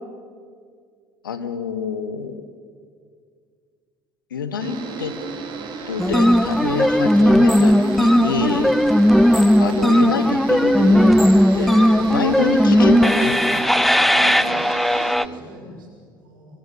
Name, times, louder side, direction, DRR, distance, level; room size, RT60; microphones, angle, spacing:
voice 1, 1.2-2.4 4.3-5.1 5.9-8.7 9.6-11.2 11.5-14.3, left 6 dB, 75° left, 11 dB, 1.4 m, -27 dB
sound 1, 4.6-15.1, right 5 dB, 50° right, 4.0 m, -33 dB
sound 2, 6.0-15.2, equal, ahead, 0.5 m, -16 dB
voice 2, 14.2-14.5 14.9-16.6, right 1 dB, 75° right, -1 dB, 6.3 m, -44 dB
25.5 x 24.5 x 7.1 m, 2.1 s
figure-of-eight pair, 60°, 11 cm